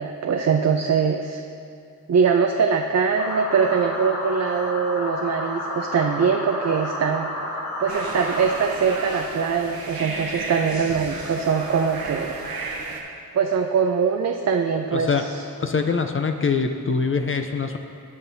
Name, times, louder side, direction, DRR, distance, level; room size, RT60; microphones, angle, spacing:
voice 1, 0.0-1.4 2.1-12.4 13.3-15.1, right 6 dB, 45° right, 3 dB, 0.5 m, -22 dB
sound 1, 3.2-8.5, left 1 dB, 85° left, 1.8 m, -31 dB
sound 2, 7.9-13.0, right 3 dB, 70° right, 1.2 m, -33 dB
voice 2, 14.9-15.2 15.6-17.8, left 5 dB, 35° left, 6 dB, 0.5 m, -23 dB
16.0 x 5.5 x 2.7 m, 2.5 s
cardioid pair, 55°, 37 cm